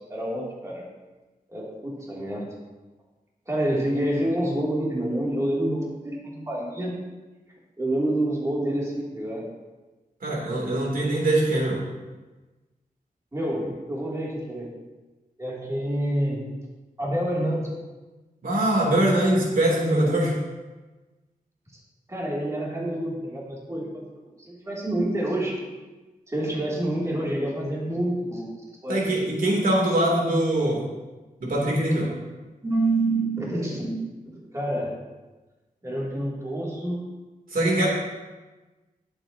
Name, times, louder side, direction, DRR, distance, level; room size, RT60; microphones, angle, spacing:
voice 1, 0.1-0.8 1.5-2.5 3.5-6.9 7.8-9.4 13.3-14.7 15.4-16.5 17.0-17.7 22.1-24.2 24.5-25.5 26.3-28.5 28.8-29.0 32.6-34.9 35.8-37.0, right 1 dB, 20° right, -5 dB, 2.9 m, -27 dB
voice 2, 10.2-11.8 18.4-20.3 28.9-30.8 31.4-32.1 37.5-37.9, right 1 dB, 75° right, -3 dB, 3.2 m, -22 dB
20.5 x 8.1 x 2.9 m, 1.2 s
wide cardioid pair, 130°, 15 cm